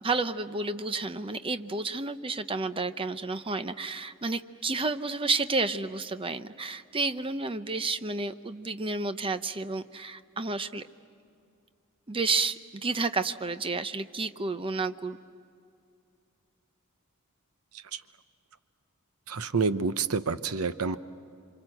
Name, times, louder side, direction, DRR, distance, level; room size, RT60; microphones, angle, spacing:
voice 1, 0.0-10.8 12.1-15.2, right 3 dB, 25° right, 10 dB, 0.7 m, -31 dB
voice 2, 19.3-21.0, right 4 dB, 75° right, 12 dB, 0.8 m, -28 dB
27.5 x 25.5 x 7.8 m, 2.4 s
head